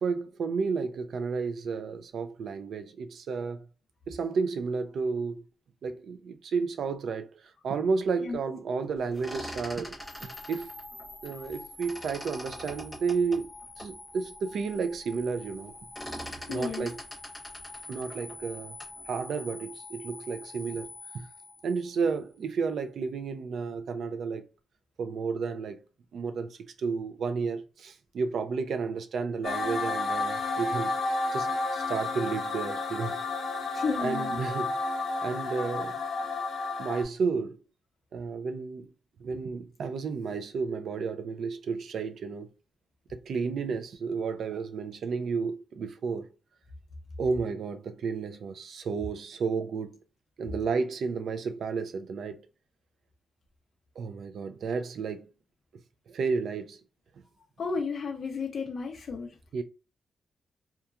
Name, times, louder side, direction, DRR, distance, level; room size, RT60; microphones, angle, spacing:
voice 1, 0.0-3.7 4.1-5.4 5.8-7.3 7.6-10.7 11.2-15.7 16.5-16.9 17.9-18.8 19.1-20.9 21.1-21.3 21.6-24.4 25.0-25.8 26.1-33.2 34.0-34.8 35.2-36.0 36.8-37.6 38.1-38.9 39.2-42.5 43.1-46.3 47.2-50.0 50.4-52.5 54.0-55.3 56.1-56.8 59.5-59.6, right 5 dB, 65° right, 0.3 m, -32 dB
sound 1, 9.0-11.6 11.8-14.0 14.5-14.6 14.8-15.2 15.5-19.0, equal, ahead, 1.0 m, -42 dB
sound 2, 10.0-22.2, left 2 dB, 20° left, 0.7 m, -47 dB
voice 2, 16.5-16.9 33.7-34.4 57.6-59.4, left 4 dB, 55° left, 0.4 m, -33 dB
sound 3, 29.4-37.0, left 3 dB, 80° left, 0.7 m, -31 dB
2.8 x 2.3 x 2.3 m
wide cardioid pair, 160°, 0 cm